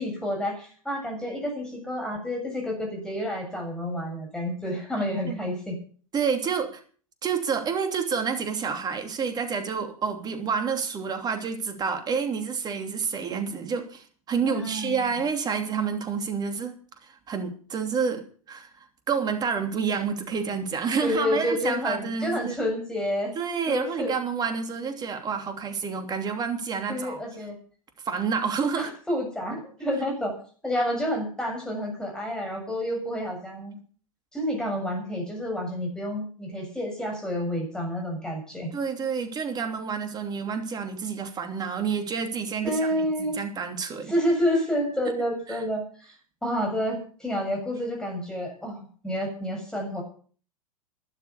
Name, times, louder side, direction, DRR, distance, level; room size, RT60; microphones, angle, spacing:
voice 1, 0.0-5.8 14.4-15.2 21.0-23.3 23.7-24.1 26.9-27.6 28.7-30.4 30.6-33.8 34.3-38.7 42.6-43.3 44.1-46.1 46.4-50.0, equal, 5° left, 0 dB, 7.3 m, -29 dB
voice 2, 5.0-5.4 6.1-6.8 7.2-18.7 19.1-22.6 23.3-27.2 28.0-28.9 38.7-44.1 45.5-45.6, right 6 dB, 20° right, 6 dB, 2.9 m, -29 dB
13.0 x 12.5 x 7.0 m, 0.43 s
figure-of-eight pair, 100°, 19 cm